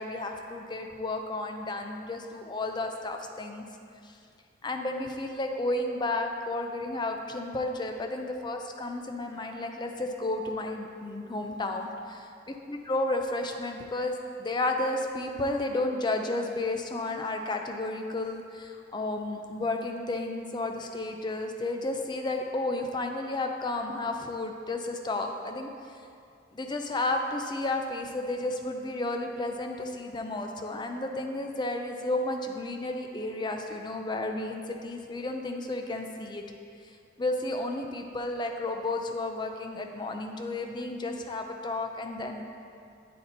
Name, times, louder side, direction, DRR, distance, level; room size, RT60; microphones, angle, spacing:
voice 1, 0.0-3.6 4.0-4.2 4.6-12.2 12.7-14.1 14.4-25.7 26.5-36.4 37.2-42.5, left 2 dB, 25° left, 4 dB, 0.4 m, -32 dB
8.4 x 4.2 x 4.0 m, 2.4 s
head